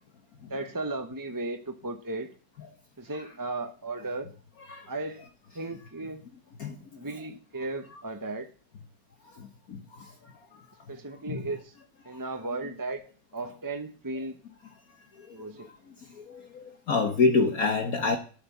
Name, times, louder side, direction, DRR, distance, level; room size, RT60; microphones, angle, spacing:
voice 1, 0.5-2.3 3.0-4.3 4.9-5.3 5.5-6.2 7.0-8.5 10.9-11.7 12.0-13.0 13.3-14.4 15.3-15.7, right 2 dB, 20° right, 0.6 m, -35 dB
voice 2, 9.7-10.0 11.3-11.4 12.5-12.6 14.2-14.3 15.6-15.7 16.2-18.2, left 4 dB, 55° left, 1.5 m, -27 dB
13.0 x 8.4 x 7.1 m
omnidirectional pair, 2.0 m